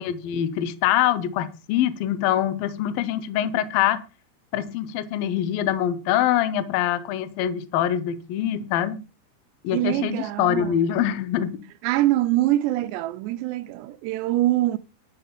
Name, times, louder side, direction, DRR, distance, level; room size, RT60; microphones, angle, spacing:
voice 1, 0.0-4.0 4.5-9.0 9.6-11.6, left 11 dB, 70° left, 2.5 m, -24 dB
voice 2, 9.7-10.8 11.8-14.8, right 15 dB, 85° right, 3.0 m, -24 dB
13.0 x 5.0 x 8.7 m
omnidirectional pair, 4.9 m